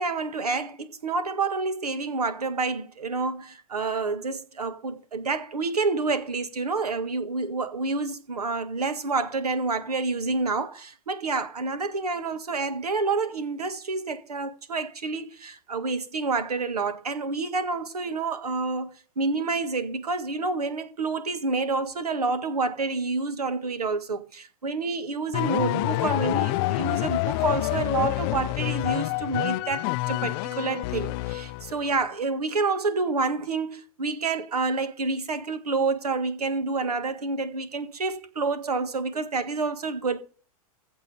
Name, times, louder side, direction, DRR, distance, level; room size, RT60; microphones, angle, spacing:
voice 1, 0.0-40.2, right 3 dB, 90° right, 1.8 m, -28 dB
sound 1, 25.3-31.8, left 21 dB, 45° left, 0.4 m, -27 dB
15.5 x 5.6 x 5.5 m
hypercardioid pair, 110°, 19 cm